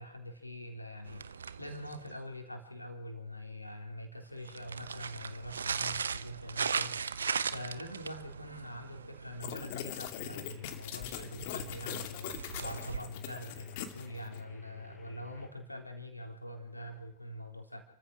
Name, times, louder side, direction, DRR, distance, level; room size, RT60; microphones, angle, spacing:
voice 1, 0.0-7.0 7.5-12.3 12.6-17.8, left 1 dB, 85° left, 5 dB, 3.8 m, -44 dB
sound 1, 1.1-2.3 4.3-9.9 12.2-13.0, right 6 dB, 70° right, 0.9 m, -38 dB
sound 2, 9.4-14.4, left 10 dB, 50° left, 2.6 m, -41 dB
sound 3, 10.1-15.5, left 6 dB, 30° left, 5.6 m, -54 dB
29.5 x 14.5 x 6.3 m, 0.69 s
figure-of-eight pair, 90°, 0 cm